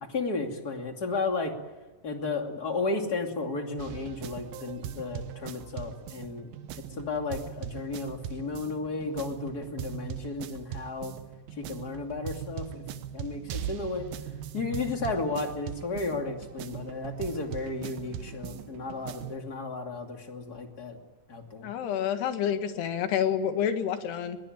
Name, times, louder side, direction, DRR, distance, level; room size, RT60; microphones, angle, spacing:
voice 1, 0.1-1.5 2.0-6.5 6.9-11.1 11.5-12.8 13.1-14.1 14.5-21.0 21.3-21.7, left 3 dB, 30° left, 3 dB, 2.5 m, -33 dB
sound 1, 3.8-19.4, right 9 dB, 70° right, 2.6 m, -40 dB
voice 2, 21.6-24.4, left 8 dB, 75° left, 7 dB, 3.8 m, -28 dB
21.5 x 20.5 x 8.9 m, 1.2 s
omnidirectional pair, 4.8 m